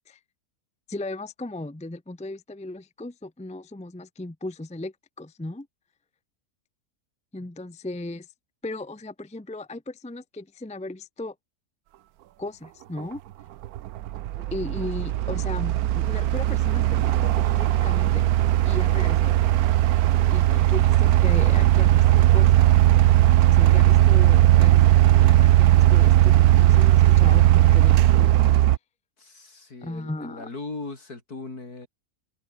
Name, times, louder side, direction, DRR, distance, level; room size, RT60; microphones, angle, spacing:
voice 1, 0.9-5.7 7.3-8.3 8.6-11.3 12.4-13.2 14.4-18.2 18.6-19.4 20.3-22.7 23.5-24.9 25.2-28.3 29.8-30.5, left 2 dB, 5° left, 0.6 m, -36 dB
sound 1, 13.0-13.1 13.6-28.8, right 13 dB, 70° right, 1.1 m, -18 dB
voice 2, 29.2-31.9, left 3 dB, 70° left, 5.1 m, -39 dB
omnidirectional pair, 1.7 m